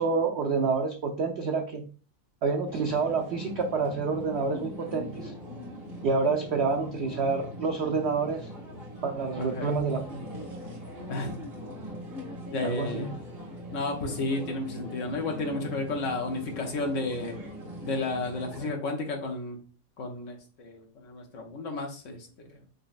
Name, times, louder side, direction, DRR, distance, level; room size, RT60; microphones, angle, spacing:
voice 1, 0.0-1.9 2.4-5.3 6.0-8.5 9.0-10.2 12.6-13.1, right 4 dB, 80° right, 4 dB, 0.6 m, -28 dB
sound 1, 2.7-18.7, equal, 35° right, 1.8 m, -41 dB
voice 2, 9.4-9.7 11.1-11.5 12.5-13.1 13.7-17.4 17.8-19.6 20.0-22.6, left 2 dB, 55° left, 3 dB, 1.1 m, -32 dB
5.2 x 3.1 x 2.4 m, 0.38 s
omnidirectional pair, 1.7 m